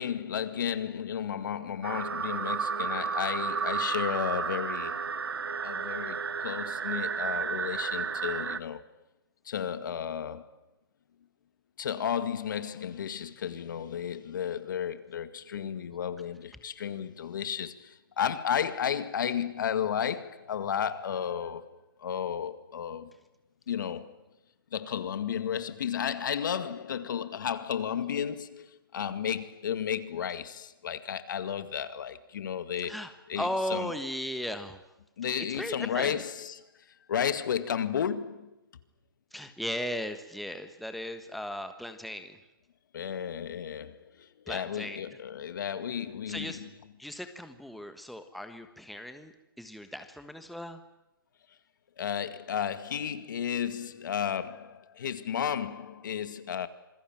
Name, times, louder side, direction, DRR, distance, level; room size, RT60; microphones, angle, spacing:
voice 1, 0.0-5.1 5.6-8.8 9.5-10.5 11.8-21.6 22.0-23.1 23.7-24.2 24.7-32.9 33.3-33.9 35.2-38.5 42.9-46.7 52.0-56.7, left 8 dB, 55° left, 2.0 m, -33 dB
sound 1, 1.8-8.6, right 6 dB, 85° right, 1.6 m, -32 dB
voice 2, 32.9-34.8 35.5-36.2 39.3-42.4 44.5-45.0 46.3-46.6 47.0-50.8, equal, ahead, 1.4 m, -37 dB
27.0 x 21.0 x 9.1 m
hypercardioid pair, 155°, 12 cm